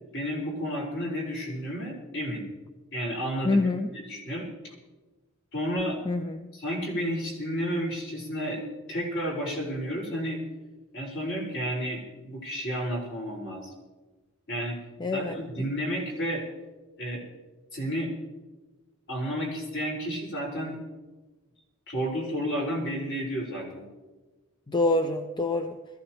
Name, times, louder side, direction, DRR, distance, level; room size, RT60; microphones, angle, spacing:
voice 1, 0.1-2.4 2.9-3.6 3.9-4.7 5.5-6.0 6.5-8.6 8.9-10.4 10.9-13.7 14.5-14.8 15.1-16.4 17.0-17.2 17.7-18.1 19.1-20.8 21.9-23.8, equal, 60° left, -3 dB, 5.1 m, -31 dB
voice 2, 3.4-3.9 6.1-6.5 15.0-15.7 24.7-25.8, left 2 dB, 20° left, 6 dB, 0.5 m, -26 dB
22.0 x 15.0 x 3.1 m, 1.3 s
head